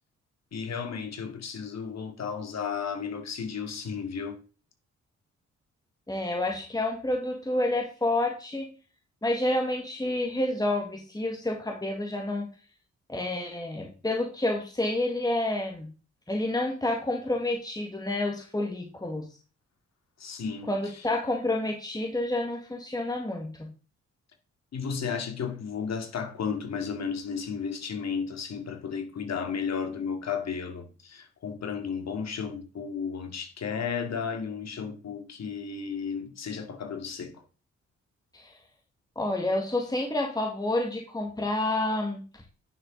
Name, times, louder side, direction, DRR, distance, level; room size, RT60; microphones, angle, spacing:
voice 1, 0.5-4.4 20.2-21.1 24.7-37.4, left 6 dB, 65° left, 2.3 m, -33 dB
voice 2, 6.1-8.7 9.2-12.5 13.1-15.9 16.3-19.3 20.7-23.7 38.3-38.6 39.2-42.4, left 1 dB, 15° left, 1.9 m, -29 dB
10.5 x 6.4 x 3.9 m
cardioid pair, 65°, 29 cm